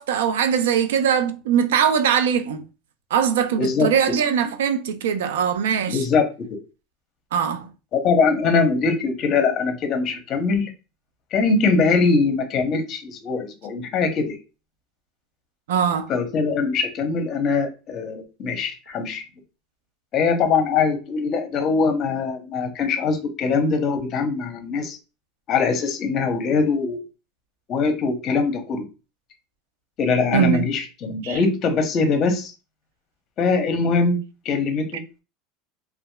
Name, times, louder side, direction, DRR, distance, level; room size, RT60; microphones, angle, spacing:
voice 1, 0.0-2.6 3.1-6.0 7.3-7.7 15.7-16.1 30.3-30.7 31.2-31.4, right 8 dB, 90° right, 0.3 m, -21 dB
voice 2, 3.6-3.9 5.9-6.3 7.9-10.7 11.3-14.4 16.1-19.2 20.1-25.0 25.5-27.0 27.7-28.9 30.0-32.5 33.4-34.2 34.4-35.0, left 4 dB, 45° left, 0.7 m, -22 dB
2.8 x 2.3 x 2.3 m
supercardioid pair, 115°, 0 cm